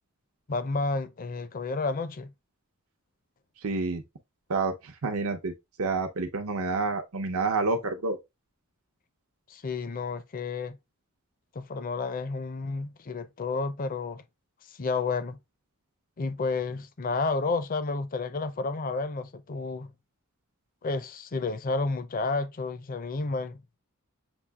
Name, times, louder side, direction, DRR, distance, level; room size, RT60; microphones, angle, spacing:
voice 1, 0.5-2.3 9.5-10.8 11.5-14.2 14.7-15.4 16.2-19.9 20.8-23.6, left 3 dB, 40° left, 0.5 m, -31 dB
voice 2, 3.6-4.0 4.5-5.5 5.8-8.2, right 3 dB, 85° right, 0.7 m, -28 dB
7.1 x 2.8 x 2.2 m
head